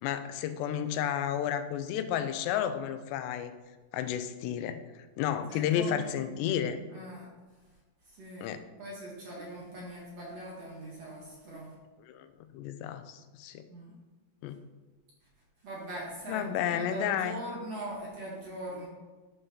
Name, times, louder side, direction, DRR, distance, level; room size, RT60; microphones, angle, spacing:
voice 1, 0.0-3.5 3.9-6.8 8.4-8.6 12.0-12.3 12.5-13.7 14.4-14.6 16.3-17.4, left 9 dB, 90° left, 10 dB, 2.8 m, -32 dB
voice 2, 5.5-6.4 6.9-7.3 8.1-8.5 8.8-11.7 13.7-13.9 15.6-18.9, right 1 dB, 50° right, -4 dB, 2.3 m, -41 dB
11.0 x 5.6 x 5.6 m, 1.3 s
omnidirectional pair, 4.8 m